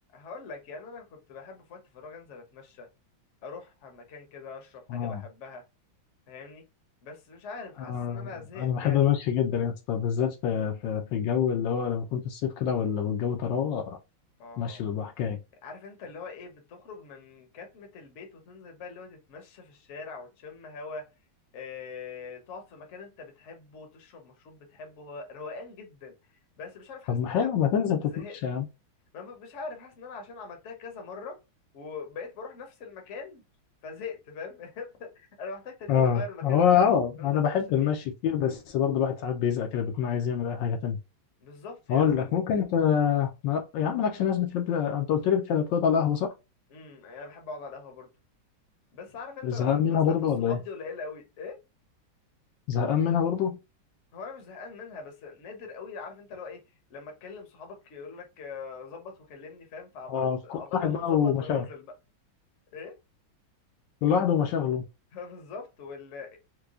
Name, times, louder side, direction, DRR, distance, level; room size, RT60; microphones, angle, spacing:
voice 1, 0.1-2.9 3.4-5.6 6.3-6.6 7.0-9.1 14.4-14.9 15.6-21.1 21.5-26.2 26.6-27.5 28.1-28.4 29.1-31.4 31.7-33.4 33.8-37.9 41.4-42.4 46.7-48.1 48.9-51.6 54.1-56.6 56.9-61.9 62.7-63.0 65.1-66.4, left 4 dB, 50° left, 1.0 m, -42 dB
voice 2, 4.9-5.2 7.8-8.3 8.6-14.0 14.6-15.4 27.1-28.6 35.9-41.0 41.9-46.3 49.4-50.6 52.7-53.6 60.1-61.6 64.0-64.8, left 8 dB, 75° left, 1.3 m, -26 dB
4.5 x 2.2 x 2.4 m
omnidirectional pair, 2.1 m